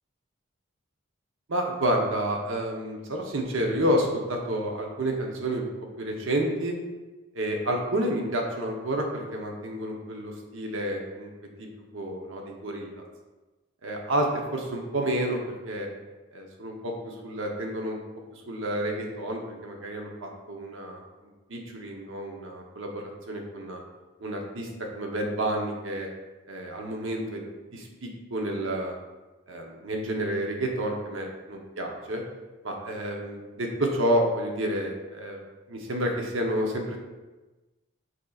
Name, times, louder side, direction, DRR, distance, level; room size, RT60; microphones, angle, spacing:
voice 1, 1.5-5.7 6.0-6.7 7.3-11.3 11.6-11.7 11.9-12.9 13.8-15.4 15.7-15.9 16.3-18.0 18.5-23.8 24.2-24.7 24.9-26.1 26.5-27.4 27.7-28.9 29.5-32.2 32.6-35.4 35.7-37.0, right 1 dB, 65° right, 1 dB, 0.7 m, -30 dB
7.6 x 2.7 x 2.4 m, 1.2 s
head